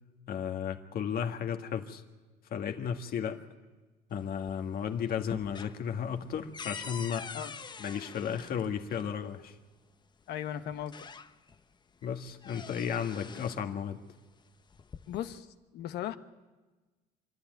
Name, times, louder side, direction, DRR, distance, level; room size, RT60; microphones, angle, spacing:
voice 1, 0.3-2.0 2.5-3.4 4.1-7.3 7.8-9.5 12.0-14.0, left 8 dB, 60° left, 6 dB, 1.7 m, -34 dB
sound 1, 4.1-4.8 5.1-9.1 10.2-10.3 10.7-11.6 12.0-13.7 14.6-15.4, left 5 dB, 25° left, 0.7 m, -45 dB
voice 2, 10.3-11.1 15.1-15.5 15.7-16.2, left 11 dB, 75° left, 10 dB, 1.1 m, -37 dB
26.0 x 12.0 x 9.2 m, 1.2 s
cardioid pair, 110°, 17 cm